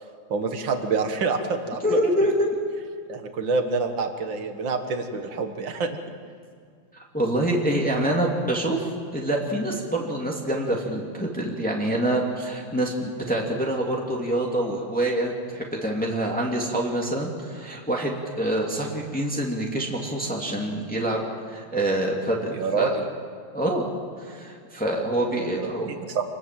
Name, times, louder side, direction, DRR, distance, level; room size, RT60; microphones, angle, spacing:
voice 1, 0.3-2.0 3.1-6.0 22.5-23.1 25.6-26.2, right 4 dB, 60° right, 6 dB, 2.4 m, -27 dB
voice 2, 1.8-2.5 6.9-21.2 21.5-23.0 23.5-23.9 24.2-25.9, right 1 dB, 5° left, -1 dB, 2.6 m, -26 dB
27.5 x 19.5 x 7.7 m, 2.2 s
omnidirectional pair, 2.3 m